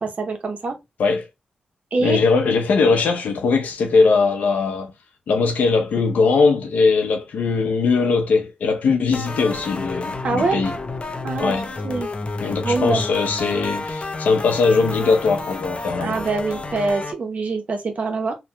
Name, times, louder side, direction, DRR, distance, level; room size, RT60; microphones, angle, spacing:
voice 1, 0.0-0.8 1.9-2.2 10.2-10.6 11.2-11.5 11.8-12.1 12.6-13.1 16.0-18.4, right 3 dB, 60° right, 0.8 m, -24 dB
voice 2, 2.0-4.9 5.3-10.7 11.4-11.7 12.4-16.2, left 4 dB, 85° left, 0.7 m, -20 dB
sound 1, 9.1-17.1, left 2 dB, 45° left, 0.6 m, -30 dB
3.0 x 2.2 x 2.9 m
cardioid pair, 50°, 3 cm